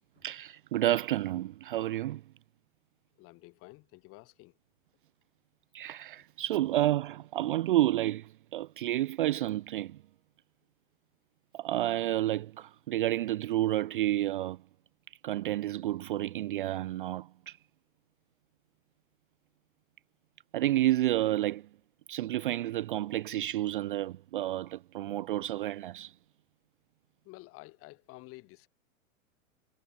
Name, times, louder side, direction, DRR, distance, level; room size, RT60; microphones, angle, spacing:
voice 1, 0.2-2.2 5.7-10.0 11.5-14.6 15.2-17.6 20.5-21.7 22.1-26.1, right 14 dB, 40° right, 0.6 m, -30 dB
voice 2, 3.2-4.6 6.2-6.3 6.5-6.6 27.2-28.7, left 23 dB, 35° left, 5.1 m, -51 dB
figure-of-eight pair, 105°, 41 cm